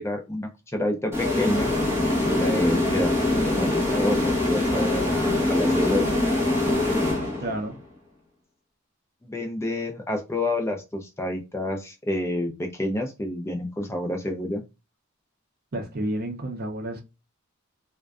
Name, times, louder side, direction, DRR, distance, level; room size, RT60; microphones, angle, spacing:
voice 1, 0.0-1.7 2.1-3.1 3.4-6.1 9.2-14.6, left 1 dB, 10° left, 0.4 m, -29 dB
sound 1, 1.1-7.7, left 2 dB, 10° right, 0.9 m, -23 dB
voice 2, 7.4-7.8 15.7-17.0, right 1 dB, 45° right, 0.6 m, -30 dB
2.4 x 2.2 x 2.3 m
head